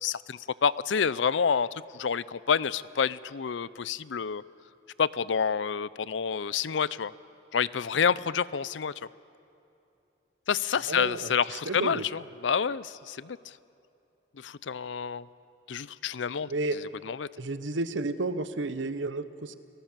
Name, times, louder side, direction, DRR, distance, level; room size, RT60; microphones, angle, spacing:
voice 1, 0.0-1.7 1.9-4.4 5.0-7.1 7.5-8.9 10.5-13.4 14.4-15.3 15.7-16.5 17.0-17.3, left 6 dB, 75° left, 19 dB, 0.5 m, -28 dB
voice 2, 10.9-12.0 16.5-16.8 17.4-19.6, right 2 dB, 80° right, 12 dB, 1.0 m, -32 dB
29.5 x 18.5 x 7.4 m, 2.7 s
head